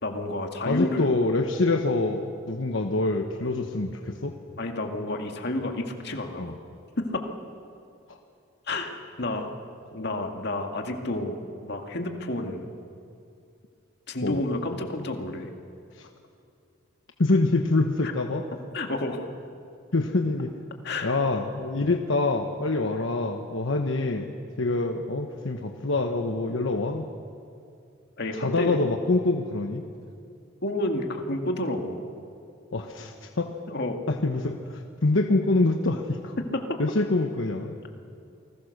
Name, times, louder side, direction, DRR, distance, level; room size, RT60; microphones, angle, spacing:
voice 1, 0.0-1.1 4.6-6.5 7.0-7.2 8.7-9.6 9.9-12.7 14.1-15.5 18.7-19.2 20.8-21.2 28.2-28.8 30.6-32.0 33.7-34.0 36.5-36.6, left 1 dB, 60° left, 3 dB, 2.1 m, -30 dB
voice 2, 0.7-4.3 6.4-6.5 8.1-8.2 14.2-14.4 16.0-16.1 17.2-18.4 19.9-20.5 21.0-24.3 24.6-27.0 28.3-29.8 32.7-33.5 34.1-36.3 36.8-37.7, left 2 dB, 80° left, 4 dB, 1.2 m, -25 dB
28.5 x 20.0 x 6.7 m, 2.5 s
head